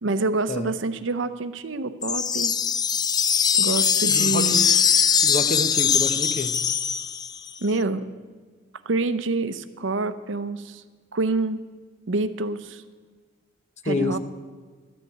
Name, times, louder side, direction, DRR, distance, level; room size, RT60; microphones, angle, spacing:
voice 1, 0.0-2.5 3.6-4.7 7.6-8.1 8.9-10.8 11.1-11.6 12.1-12.8 13.8-14.2, right 3 dB, 75° right, 12 dB, 0.7 m, -27 dB
sound 1, 2.0-7.5, left 7 dB, 20° left, 0.3 m, -21 dB
voice 2, 4.1-4.7 5.2-6.6 13.9-14.2, left 2 dB, 35° left, 10 dB, 0.7 m, -28 dB
13.0 x 7.0 x 9.5 m, 1.4 s
head